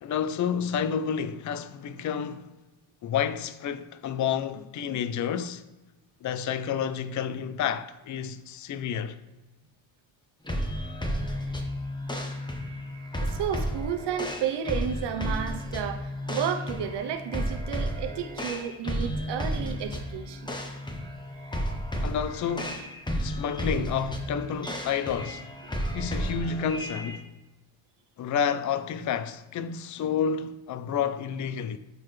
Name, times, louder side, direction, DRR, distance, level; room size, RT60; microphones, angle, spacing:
voice 1, 0.0-2.5 3.0-5.6 6.2-9.2 22.0-22.8 23.2-25.5 25.9-27.3 28.2-31.8, left 7 dB, 40° left, 0.5 m, -30 dB
sound 1, 10.4-27.2, equal, 10° left, 0.9 m, -33 dB
voice 2, 13.2-20.5, right 8 dB, 55° right, 0.8 m, -32 dB
8.6 x 3.9 x 3.2 m
cardioid pair, 100°, 49 cm